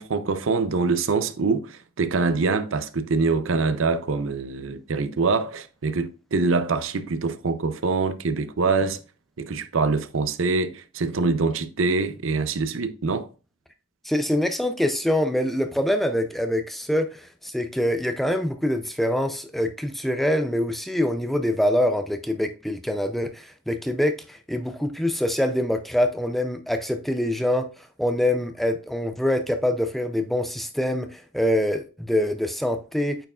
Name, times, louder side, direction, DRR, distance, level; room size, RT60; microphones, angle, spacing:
voice 1, 0.0-9.0 9.4-13.3, right 4 dB, 80° right, 0.6 m, -24 dB
voice 2, 14.0-27.7 28.0-33.2, left 1 dB, ahead, 0.4 m, -25 dB
8.8 x 4.6 x 2.4 m
head